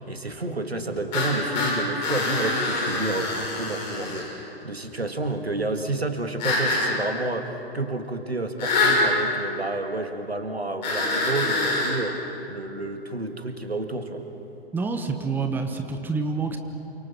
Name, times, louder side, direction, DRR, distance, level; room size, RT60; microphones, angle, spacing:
voice 1, 0.0-12.2 12.5-14.2, right 2 dB, 85° right, 6 dB, 2.1 m, -30 dB
sound 1, 1.1-4.3 6.4-6.9 8.6-9.0 10.8-12.0, left 2 dB, 45° left, 7.7 m, -25 dB
voice 2, 14.7-16.6, right 4 dB, 5° right, 5 dB, 1.2 m, -27 dB
28.5 x 25.0 x 5.9 m, 3.0 s
figure-of-eight pair, 115°, 31 cm